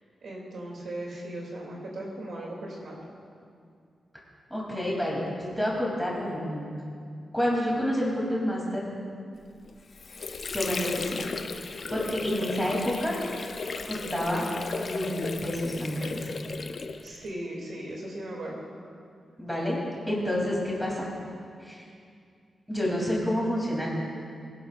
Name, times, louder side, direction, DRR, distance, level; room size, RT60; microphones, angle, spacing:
voice 1, 0.2-3.0 16.0-16.2 17.0-18.6, right 1 dB, 60° right, -2 dB, 2.7 m, -38 dB
voice 2, 4.5-6.7 7.3-8.9 10.5-11.1 11.7-13.2 13.8-14.4 14.8-16.3 19.4-19.8 20.1-21.1 21.6-21.8 22.7-23.9, equal, ahead, -5 dB, 3.0 m, -29 dB
Water / Sink (filling or washing), 9.6-17.3, left 4 dB, 45° left, 0.6 m, -35 dB
24.0 x 11.5 x 2.5 m, 2.3 s
wide cardioid pair, 175°, 0 cm